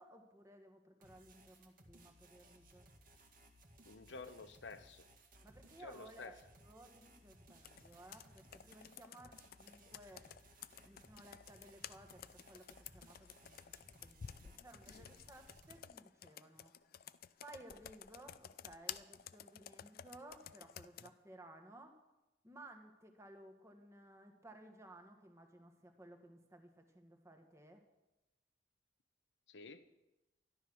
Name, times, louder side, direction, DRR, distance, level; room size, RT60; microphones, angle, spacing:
voice 1, 0.0-2.9 5.4-13.7 14.0-16.7 17.4-22.0 22.4-27.8, right 1 dB, 15° right, 4 dB, 1.6 m, -58 dB
sound 1, 1.0-15.8, right 1 dB, 50° right, 2.0 m, -63 dB
voice 2, 3.8-5.1 5.8-6.4 14.9-15.1 29.5-29.8, left 4 dB, 90° left, 11 dB, 0.9 m, -51 dB
Computer keyboard, 7.6-21.1, left 9 dB, 55° left, 0.4 m, -53 dB
13.0 x 11.5 x 6.3 m, 1.0 s
head